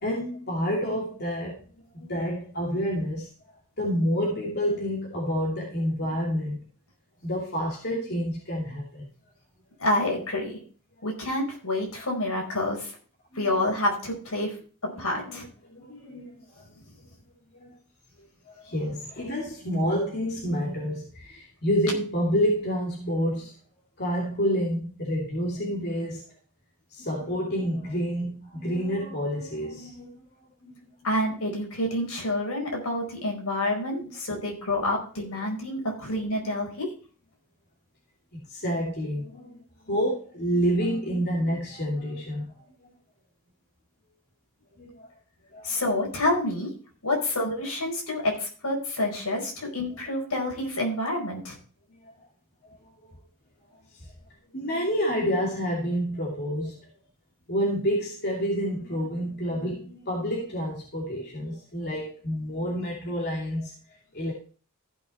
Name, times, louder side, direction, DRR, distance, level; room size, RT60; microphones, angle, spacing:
voice 1, 0.0-1.6 1.9-3.3 3.8-6.7 7.2-9.1 13.3-13.5 14.9-16.6 17.5-17.7 18.4-23.5 24.0-26.2 26.9-30.1 30.6-30.8 34.0-34.1 38.5-42.6 44.8-45.1 45.5-45.8 51.9-52.1 52.6-53.1 53.7-54.0 54.5-56.8 57.5-64.3, equal, 50° left, -2 dB, 2.6 m, -29 dB
voice 2, 9.8-10.6 11.0-12.9 13.3-14.5 14.8-15.5 31.0-36.9 45.6-46.7 47.0-51.6, left 1 dB, 75° left, 0 dB, 4.7 m, -28 dB
15.0 x 6.1 x 4.4 m, 0.40 s
head